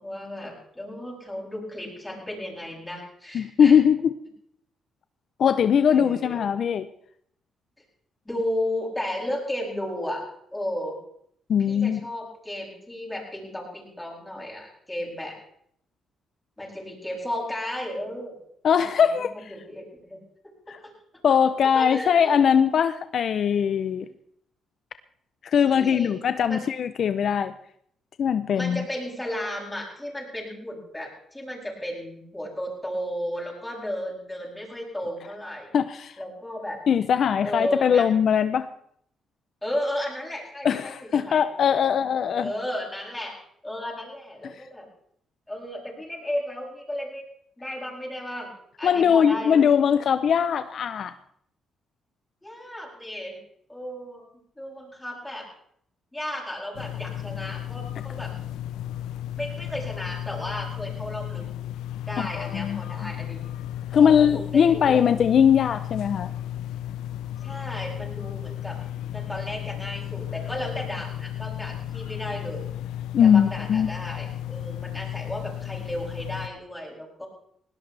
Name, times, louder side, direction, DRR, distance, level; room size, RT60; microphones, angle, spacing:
voice 1, 0.0-3.8 5.9-6.4 8.2-10.2 10.5-11.0 11.7-15.4 16.6-18.4 18.7-19.2 19.5-20.2 20.7-20.8 21.7-22.4 25.6-26.1 26.5-26.6 28.6-35.8 36.2-36.8 37.4-38.1 39.6-41.4 41.8-42.0 42.3-43.4 43.6-44.9 45.5-47.2 47.6-48.5 48.8-49.7 52.4-53.4 53.7-54.3 54.6-55.5 56.1-58.3 59.4-61.5 62.1-63.4 64.0-65.2 67.4-68.8 69.1-72.6 73.2-77.3, left 1 dB, 10° left, -2 dB, 7.7 m, -34 dB
voice 2, 3.3-4.1 5.4-6.9 11.5-12.0 18.6-19.5 20.7-20.8 21.2-24.1 25.4-27.5 28.2-28.8 35.7-36.2 36.9-38.7 40.6-42.5 44.4-44.7 48.8-51.1 62.2-63.1 63.9-66.3 73.1-73.9, left 8 dB, 60° left, 11 dB, 0.7 m, -21 dB
sound 1, 56.7-76.5, left 11 dB, 90° left, 0.8 m, -34 dB
20.0 x 18.0 x 3.4 m, 0.68 s
cardioid pair, 90°, 0 cm